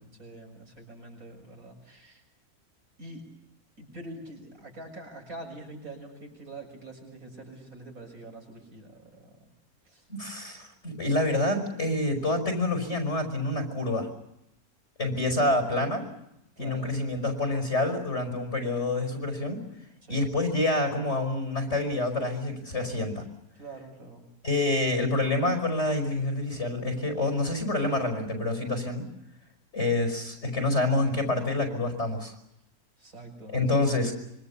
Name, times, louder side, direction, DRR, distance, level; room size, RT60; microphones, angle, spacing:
voice 1, 0.2-2.2 3.0-3.2 3.8-9.5 9.9-10.1 16.6-16.9 20.0-20.3 23.5-24.2 33.0-34.0, right 2 dB, 65° right, 1 dB, 7.3 m, -45 dB
voice 2, 10.1-14.1 15.0-16.1 16.6-19.7 20.1-23.3 24.4-29.1 29.7-32.3 33.5-34.1, left 2 dB, 50° left, 4 dB, 5.5 m, -27 dB
26.0 x 24.5 x 7.0 m, 0.83 s
omnidirectional pair, 1.6 m